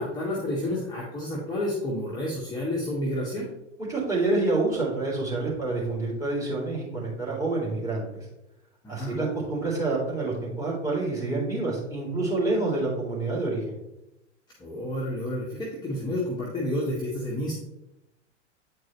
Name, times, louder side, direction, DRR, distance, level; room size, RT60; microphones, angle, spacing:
voice 1, 0.0-3.5 8.8-9.2 14.6-17.6, left 1 dB, 10° left, -6 dB, 1.3 m, -30 dB
voice 2, 3.9-8.3 8.9-13.8, right 2 dB, 10° right, -3 dB, 2.5 m, -27 dB
8.6 x 4.6 x 3.1 m, 0.90 s
figure-of-eight pair, 95°, 36 cm